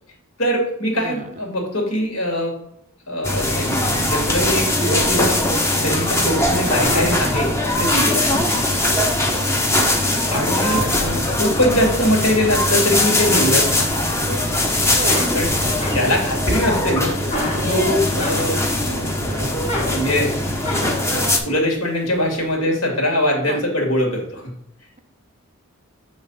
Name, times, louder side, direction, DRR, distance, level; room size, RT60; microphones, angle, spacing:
voice 1, 0.4-2.5 3.1-5.4 5.8-7.5 7.8-8.3 10.2-13.9 15.3-17.2 17.7-19.6 19.9-20.3 21.1-24.5, left 1 dB, 75° left, 0 dB, 2.2 m, -22 dB
voice 2, 1.0-1.3 8.3-8.4 9.4-9.5 9.8-10.1 14.9-15.3 17.6-18.0 23.4-23.6, right 3 dB, 35° right, 8 dB, 0.5 m, -32 dB
sound 1, 3.2-21.4, left 1 dB, 10° left, 0.7 m, -21 dB
sound 2, 6.4-9.8 10.3-11.4 11.9-12.9 13.2-14.4 14.8-18.8 19.2-21.2, equal, 30° left, 1.6 m, -29 dB
7.5 x 3.2 x 5.3 m, 0.75 s
head